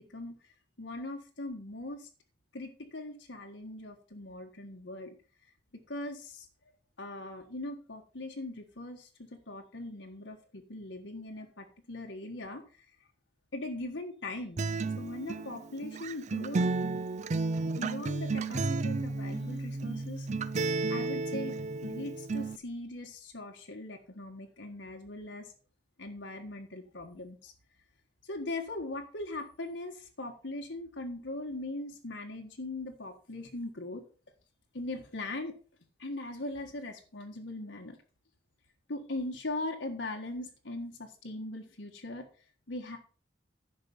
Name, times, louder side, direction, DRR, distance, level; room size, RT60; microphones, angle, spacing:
voice 1, 0.8-2.1 2.5-5.1 5.9-6.5 7.0-12.8 13.5-14.6 15.0-16.7 17.8-20.3 20.9-21.6 21.8-25.5 26.0-27.5 28.2-34.0 34.7-35.5 36.0-38.0 38.9-42.3 42.7-43.0, left 2 dB, 85° left, 2 dB, 1.6 m, -40 dB
Acoustic guitar, 14.6-22.6, right 3 dB, 40° right, 0.4 m, -32 dB
10.5 x 6.1 x 5.4 m, 0.38 s
head